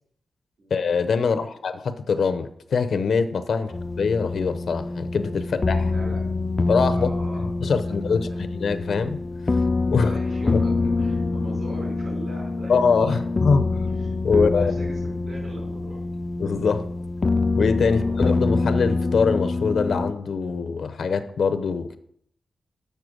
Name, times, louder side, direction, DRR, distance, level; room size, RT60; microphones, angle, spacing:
voice 1, 0.7-3.7 4.0-5.9 6.7-7.1 7.6-9.2 9.9-10.2 12.7-13.8 14.2-14.7 16.4-16.9 17.6-22.0, left 5 dB, 70° left, 11 dB, 0.6 m, -23 dB
sound 1, 3.7-20.1, left 3 dB, 30° left, 0.3 m, -25 dB
voice 2, 5.5-6.2 6.9-8.4 10.0-13.2 13.8-16.1 17.8-18.2, right 1 dB, 60° right, -1 dB, 4.4 m, -43 dB
6.6 x 6.5 x 6.2 m, 0.67 s
wide cardioid pair, 140°, 0 cm